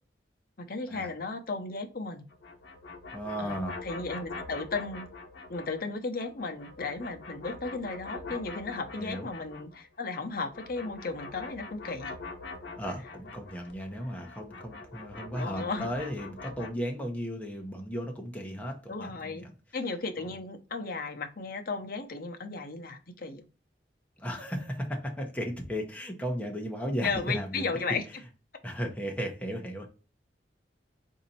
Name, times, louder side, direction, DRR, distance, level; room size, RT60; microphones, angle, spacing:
voice 1, 0.6-2.2 3.4-5.1 5.5-12.1 15.4-15.9 18.9-19.5 19.7-23.4 27.0-28.0, left 3 dB, 55° left, 5 dB, 0.7 m, -35 dB
sound 1, 2.3-5.9 6.2-9.9 10.1-16.7, left 3 dB, 80° left, 0.9 m, -44 dB
voice 2, 3.1-3.7 9.0-9.3 12.8-19.5 24.2-27.6 28.6-29.9, equal, 10° left, 0 dB, 0.8 m, -35 dB
4.1 x 2.7 x 4.1 m, 0.34 s
head